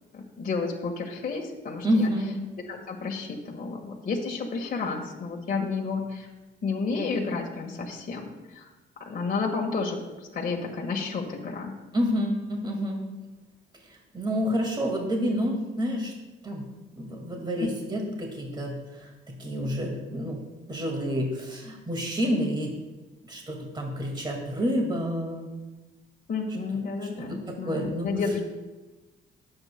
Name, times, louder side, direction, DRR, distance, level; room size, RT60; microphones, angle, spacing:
voice 1, 0.1-2.1 2.7-6.3 6.6-8.7 9.0-11.7 17.6-17.7 26.3-28.4, left 4 dB, 45° left, 0 dB, 1.5 m, -31 dB
voice 2, 1.8-2.3 11.9-13.0 14.1-16.1 16.4-16.6 17.0-18.8 19.4-20.4 20.7-22.7 23.3-25.5 27.3-28.1, equal, 20° right, 0 dB, 1.9 m, -28 dB
22.5 x 7.9 x 2.2 m, 1.2 s
cardioid pair, 90°, 20 cm